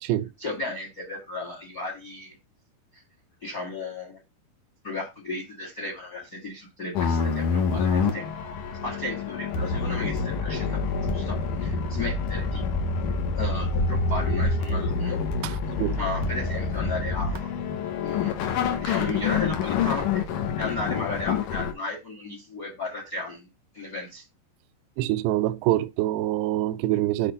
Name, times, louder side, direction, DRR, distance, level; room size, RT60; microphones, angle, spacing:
voice 1, 0.4-2.4 3.4-4.2 4.8-8.3 8.8-12.6 13.3-15.2 16.0-17.5 18.0-18.4 18.8-20.2 20.6-23.5 23.7-24.2, left 2 dB, 55° left, 1.0 m, -34 dB
sound 1, 6.9-21.7, left 4 dB, 70° left, 1.9 m, -27 dB
voice 2, 15.4-16.0 25.0-27.3, right 15 dB, 85° right, 2.6 m, -25 dB
8.0 x 3.3 x 5.4 m
omnidirectional pair, 4.9 m